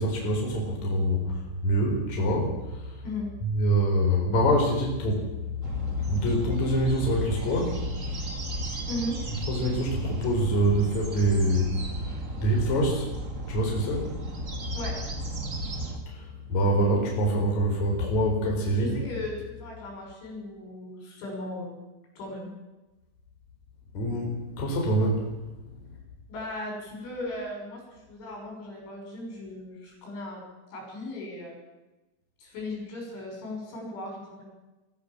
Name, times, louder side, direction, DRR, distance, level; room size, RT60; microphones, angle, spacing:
voice 1, 0.0-3.0 3.4-5.3 6.0-8.3 8.7-8.8 9.5-14.1 16.1-19.0 23.9-25.3, right 1 dB, 40° left, -1 dB, 5.3 m, -26 dB
sound 1, 5.6-16.0, right 1 dB, 55° right, 0.8 m, -34 dB
voice 2, 18.7-21.8 22.2-22.5 26.3-30.4 30.7-31.6 32.4-34.4, left 1 dB, 75° left, 0 dB, 8.8 m, -37 dB
24.0 x 14.5 x 7.5 m, 1.1 s
omnidirectional pair, 5.5 m